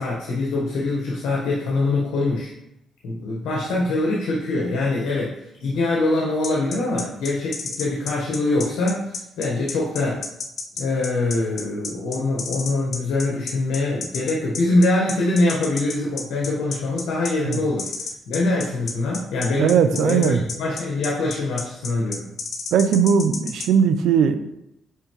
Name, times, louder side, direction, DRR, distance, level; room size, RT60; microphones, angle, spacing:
voice 1, 0.0-2.5 3.0-10.2 10.8-17.9 18.3-22.2, left 2 dB, 85° left, -3 dB, 1.2 m, -23 dB
sound 1, 6.4-23.7, left 5 dB, 60° left, 0.7 m, -31 dB
voice 2, 19.6-20.4 22.7-24.4, right 7 dB, 80° right, 10 dB, 0.5 m, -18 dB
9.2 x 3.3 x 3.1 m, 0.84 s
cardioid pair, 90°, 0 cm